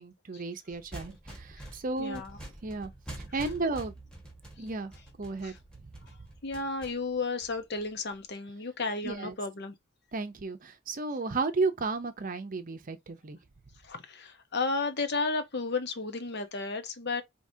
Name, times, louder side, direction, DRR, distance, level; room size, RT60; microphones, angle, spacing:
voice 1, 0.0-2.2 2.6-2.9 3.3-4.0 4.6-4.9 5.2-5.5 5.8-5.9 9.0-9.3 10.1-13.4, right 3 dB, 40° right, 0.6 m, -33 dB
sound 1, 0.7-8.1, right 1 dB, 5° left, 1.5 m, -46 dB
voice 2, 2.0-2.4 5.4-5.6 6.4-9.7 13.8-17.2, left 3 dB, 55° left, 0.8 m, -33 dB
4.8 x 2.9 x 2.7 m
head